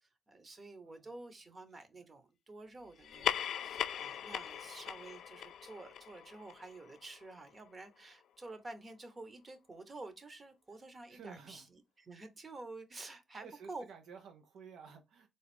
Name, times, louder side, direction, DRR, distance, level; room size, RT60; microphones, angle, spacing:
voice 1, 0.0-13.8, right 2 dB, 35° right, 1.0 m, -50 dB
sound 1, 3.0-7.9, left 9 dB, 75° left, 0.3 m, -40 dB
voice 2, 4.0-4.4 11.1-11.7 13.4-15.3, right 6 dB, 85° right, 0.6 m, -53 dB
4.0 x 2.4 x 3.4 m
cardioid pair, 80°, 0 cm